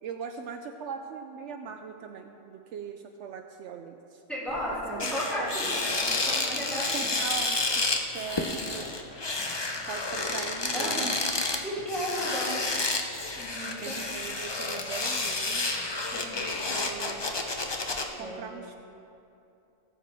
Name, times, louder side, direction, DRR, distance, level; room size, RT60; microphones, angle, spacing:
voice 1, 0.0-4.2 4.7-5.1 5.4-5.6 6.3-8.9 9.9-11.2 13.8-15.7 16.7-17.4 18.2-18.8, right 6 dB, 75° right, 6 dB, 0.9 m, -40 dB
voice 2, 4.3-7.1 10.7-11.2 11.6-12.7 13.4-14.1 16.1-16.5 16.8-16.9 18.2-18.5, equal, ahead, -8 dB, 2.8 m, -34 dB
sound 1, 4.5-4.6 5.0-18.0, left 3 dB, 30° left, 0.6 m, -30 dB
18.5 x 7.6 x 3.4 m, 2.7 s
omnidirectional pair, 1.3 m